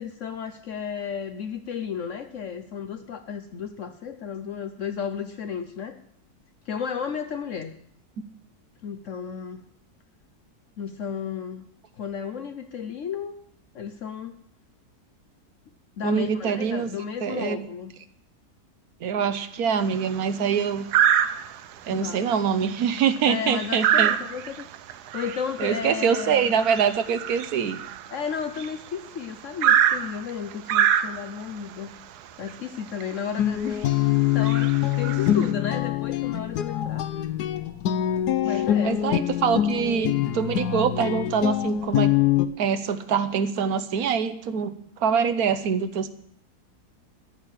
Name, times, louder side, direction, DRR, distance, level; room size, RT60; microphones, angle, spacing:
voice 1, 0.0-6.0 6.7-7.7 8.8-9.7 10.8-11.7 11.9-13.4 13.7-14.4 16.0-17.9 21.8-22.3 23.2-26.5 28.1-31.9 32.4-33.9 34.3-37.1 38.4-39.1, left 7 dB, 60° left, 7 dB, 1.0 m, -33 dB
voice 2, 16.0-16.9 17.2-17.6 19.0-20.9 21.9-24.1 25.6-27.8 38.8-42.1 42.6-44.7 45.0-46.1, right 7 dB, 70° right, 11 dB, 1.3 m, -24 dB
sound 1, 19.8-20.2 20.9-21.7 22.2-22.3 22.6-28.9 29.6-31.5 32.5-32.6 33.0-33.1 33.7-33.9 34.3-35.5, right 9 dB, 90° right, 1.2 m, -25 dB
Guitar, 33.4-42.5, left 12 dB, 90° left, 1.3 m, -24 dB
13.0 x 6.5 x 9.0 m, 0.70 s
omnidirectional pair, 1.7 m